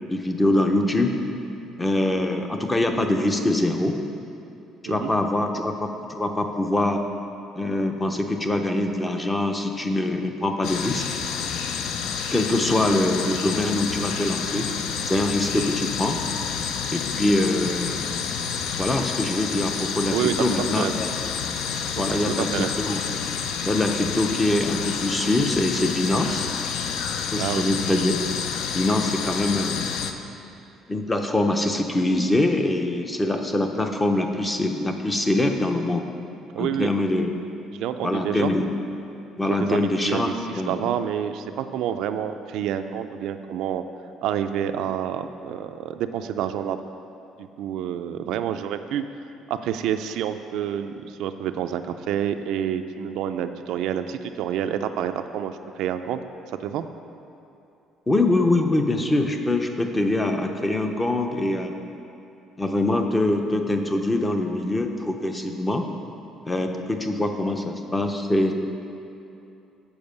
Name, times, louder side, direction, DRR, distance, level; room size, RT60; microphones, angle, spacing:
voice 1, 0.1-1.1 1.8-4.0 4.8-7.0 7.6-11.0 12.1-14.7 15.0-16.2 16.9-18.2 18.8-21.1 22.0-23.0 23.6-26.5 27.3-28.2 28.7-29.9 30.9-36.1 36.6-37.3 38.0-38.7 39.4-40.3 40.6-40.8 58.1-61.7 62.6-65.8 66.4-68.5, left 1 dB, 10° left, 4 dB, 0.5 m, -24 dB
sound 1, 10.6-30.1, left 6 dB, 70° left, 0.5 m, -29 dB
voice 2, 22.4-22.7 27.4-27.6 36.5-36.9 37.7-38.5 39.4-43.8 44.2-46.8 47.4-49.0 49.5-56.2 56.6-56.8, right 9 dB, 70° right, 8 dB, 0.3 m, -28 dB
7.1 x 5.1 x 6.6 m, 2.7 s
cardioid pair, 145°, 0 cm